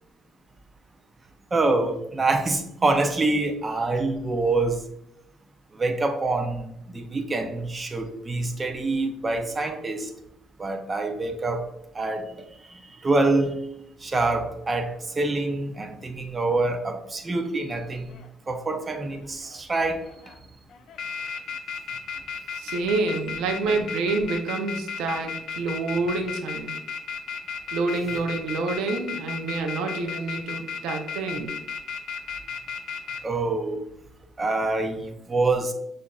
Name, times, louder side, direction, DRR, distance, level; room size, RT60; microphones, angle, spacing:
voice 1, 1.5-4.8 5.8-10.1 10.6-11.7 11.9-12.3 12.7-13.6 14.0-18.2 18.5-20.0 33.2-33.8 34.4-35.7, right 2 dB, 25° right, 5 dB, 0.5 m, -26 dB
sound 1, 17.9-18.3 18.9-19.6 20.0-20.4 20.7-33.2, left 6 dB, 65° left, 0.4 m, -34 dB
voice 2, 22.6-26.8 27.7-31.5, right 3 dB, 85° right, 5 dB, 0.5 m, -28 dB
5.8 x 2.5 x 2.3 m, 0.79 s
cardioid pair, 105°, 0 cm